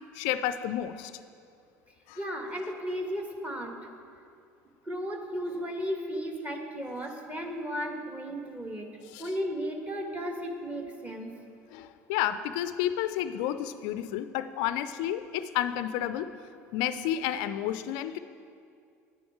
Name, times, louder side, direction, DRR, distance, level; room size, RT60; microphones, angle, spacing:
voice 1, 0.1-1.1 2.1-2.2 9.0-9.3 11.7-16.3 16.7-18.2, left 11 dB, 60° left, 12 dB, 0.4 m, -31 dB
voice 2, 2.2-3.7 4.9-8.9 9.2-11.3, equal, 15° right, 3 dB, 1.6 m, -34 dB
10.5 x 9.6 x 4.7 m, 2.4 s
figure-of-eight pair, 65°, 9 cm